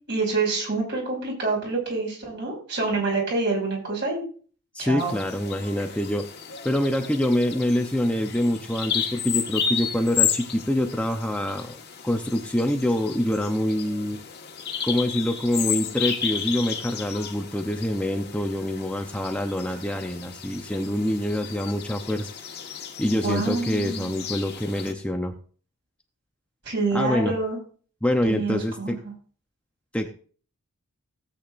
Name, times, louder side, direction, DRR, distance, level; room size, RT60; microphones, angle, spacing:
voice 1, 0.1-4.2 4.8-5.1 23.2-24.1 26.6-27.6 28.2-28.9, right 3 dB, 50° right, -1 dB, 5.7 m, -27 dB
voice 2, 4.7-6.3 6.6-11.8 12.0-14.2 14.8-22.3 23.0-25.4 26.9-27.4 28.0-29.0 29.9-30.1, left 1 dB, 5° left, 3 dB, 0.7 m, -25 dB
Bird vocalization bird call bird song, 5.0-24.9, left 8 dB, 50° left, 1.5 m, -33 dB
17.0 x 8.5 x 2.6 m, 0.41 s
head